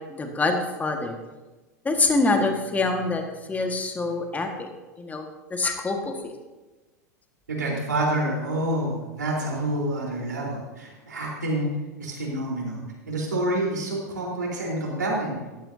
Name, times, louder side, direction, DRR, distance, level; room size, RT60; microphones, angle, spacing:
voice 1, 0.1-1.2 1.9-3.2 3.5-4.7 5.0-6.4, left 3 dB, 15° left, 4 dB, 1.7 m, -25 dB
voice 2, 7.5-11.7 12.0-15.4, right 1 dB, 80° right, -3 dB, 4.2 m, -28 dB
15.5 x 12.0 x 2.8 m, 1.2 s
figure-of-eight pair, 90°, 10 cm